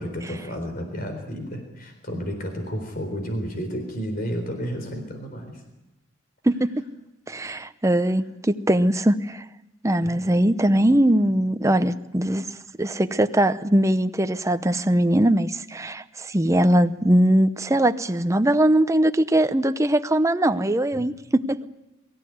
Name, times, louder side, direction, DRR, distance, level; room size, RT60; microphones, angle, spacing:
voice 1, 0.0-5.6 10.0-10.3 20.9-21.0, equal, 50° left, 5 dB, 4.0 m, -32 dB
voice 2, 6.4-6.9 7.3-9.4 9.8-12.4 12.8-21.7, right 1 dB, 15° right, 11 dB, 0.8 m, -21 dB
23.0 x 15.0 x 9.4 m, 0.98 s
head